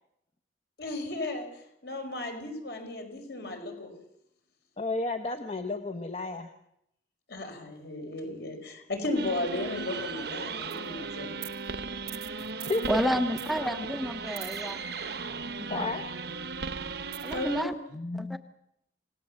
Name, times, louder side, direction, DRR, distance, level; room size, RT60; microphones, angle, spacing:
voice 1, 0.8-1.5 1.8-3.9 7.3-11.3 17.3-17.8, left 2 dB, 60° left, 4 dB, 5.3 m, -34 dB
voice 2, 4.8-6.5 12.5-13.0 15.7-16.1 17.9-18.4, left 2 dB, 35° left, 7 dB, 1.1 m, -32 dB
sound 1, 9.2-17.6, right 4 dB, 60° right, 1.0 m, -36 dB
voice 3, 12.9-14.8 15.4-15.9 17.2-17.7 18.1-18.4, equal, ahead, 7 dB, 0.9 m, -31 dB
28.0 x 18.5 x 7.4 m, 0.80 s
head